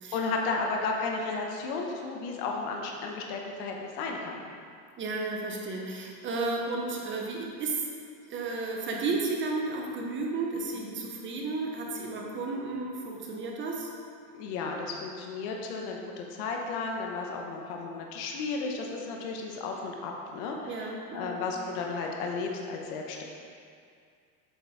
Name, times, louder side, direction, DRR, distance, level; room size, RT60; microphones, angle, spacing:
voice 1, 0.1-4.4 14.3-23.2, left 4 dB, 70° left, 1 dB, 0.9 m, -33 dB
voice 2, 5.0-7.8 8.2-13.9 20.7-21.4, right 3 dB, 25° right, -1 dB, 0.6 m, -33 dB
7.9 x 3.8 x 3.4 m, 2.3 s
supercardioid pair, 135°, 48 cm